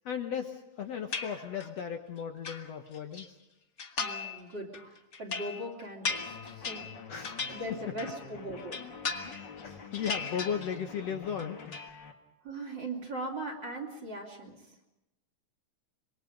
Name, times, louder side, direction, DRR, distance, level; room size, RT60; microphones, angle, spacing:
voice 1, 0.1-3.4 7.1-7.6 9.2-12.0, left 7 dB, 60° left, 5 dB, 2.0 m, -36 dB
sound 1, 1.1-1.8 2.2-3.3 3.8-4.4 4.7-8.3 8.6-9.6 9.9-11.0 11.3-11.9, left 4 dB, 85° left, 0.6 m, -38 dB
voice 2, 4.0-6.9 7.5-8.9 12.4-14.8, right 1 dB, 35° right, 4 dB, 3.6 m, -40 dB
sound 2, 6.1-12.1, left 5 dB, 40° left, 2.4 m, -47 dB
25.5 x 22.5 x 5.2 m, 0.91 s
omnidirectional pair, 3.7 m